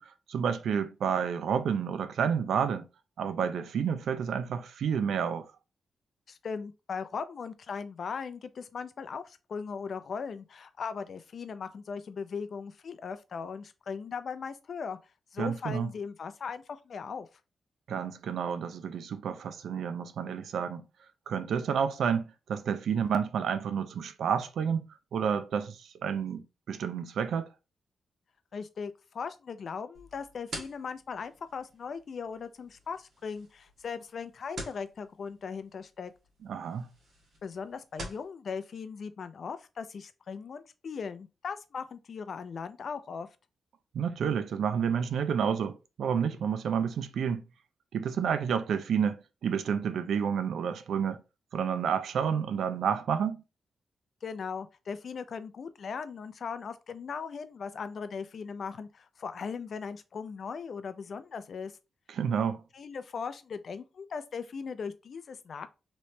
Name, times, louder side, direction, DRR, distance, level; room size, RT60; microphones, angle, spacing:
voice 1, 0.0-2.9 3.2-5.5 15.4-15.9 17.9-20.8 21.3-27.5 36.4-36.9 43.9-47.4 47.9-51.2 51.5-53.4 62.1-62.6, right 7 dB, 80° right, 0.4 m, -30 dB
voice 2, 6.3-15.0 15.3-17.3 28.5-36.1 37.4-43.3 54.2-61.7 62.7-65.7, left 5 dB, 60° left, 0.4 m, -38 dB
sound 1, 29.9-38.3, right 2 dB, 65° right, 1.4 m, -48 dB
3.1 x 3.0 x 2.7 m
cardioid pair, 105°, 0 cm